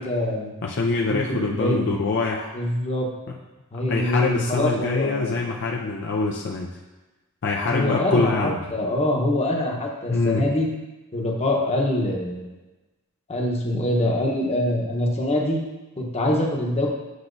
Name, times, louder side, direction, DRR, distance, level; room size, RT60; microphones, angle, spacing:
voice 1, 0.0-0.5 1.0-1.9 2.5-3.1 3.7-5.3 7.6-10.7 11.1-12.5 13.3-15.6 16.0-16.9, left 1 dB, 30° left, -1 dB, 0.9 m, -24 dB
voice 2, 0.6-2.5 3.9-6.7 7.4-8.6 10.1-10.4, left 3 dB, 55° left, 0 dB, 0.5 m, -24 dB
8.0 x 5.7 x 2.6 m, 1.1 s
head